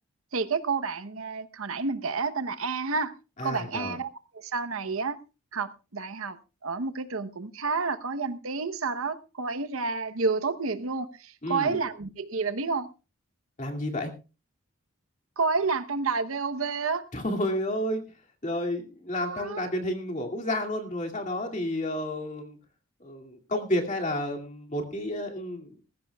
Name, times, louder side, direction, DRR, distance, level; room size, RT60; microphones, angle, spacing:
voice 1, 0.3-3.1 3.4-4.1 4.3-5.2 5.5-6.4 6.6-12.9 15.4-17.0 19.2-19.7, right 4 dB, 80° right, 0.9 m, -30 dB
voice 2, 3.4-4.0 11.4-11.8 13.6-14.1 17.1-18.0 18.4-22.6 23.0-25.7, left 1 dB, 35° left, 2.4 m, -31 dB
19.5 x 15.0 x 2.3 m
head